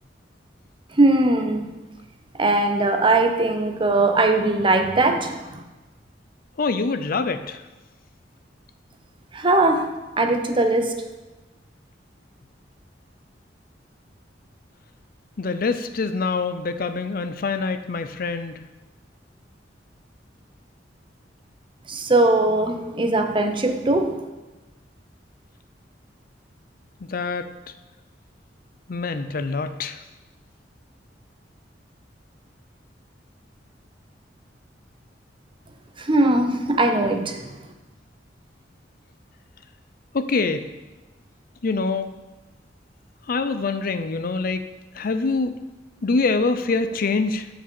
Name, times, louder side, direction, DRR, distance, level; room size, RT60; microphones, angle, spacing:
voice 1, 1.0-1.7 2.4-5.6 9.3-10.9 21.9-24.2 36.0-37.5, right 2 dB, 30° right, 5 dB, 0.8 m, -20 dB
voice 2, 6.6-7.6 15.4-18.6 27.1-27.5 28.9-30.0 40.1-40.7 41.6-42.1 43.3-44.6 44.9-45.6 46.0-47.5, left 4 dB, 50° left, 10 dB, 0.5 m, -25 dB
8.6 x 4.9 x 6.9 m, 1.1 s
head